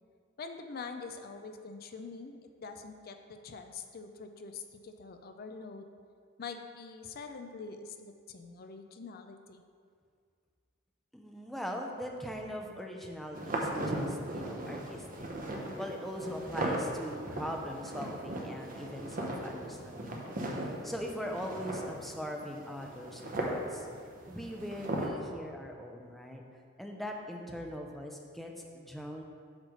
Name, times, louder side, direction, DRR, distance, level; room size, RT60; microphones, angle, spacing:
voice 1, 0.4-5.9 6.4-9.6, left 4 dB, 45° left, 6 dB, 0.5 m, -45 dB
voice 2, 11.1-15.3 15.8-23.9 24.3-26.4 26.8-29.2, equal, ahead, 1 dB, 0.6 m, -41 dB
sound 1, 13.3-25.1, right 1 dB, 40° right, 0.9 m, -38 dB
8.2 x 3.2 x 6.3 m, 2.1 s
head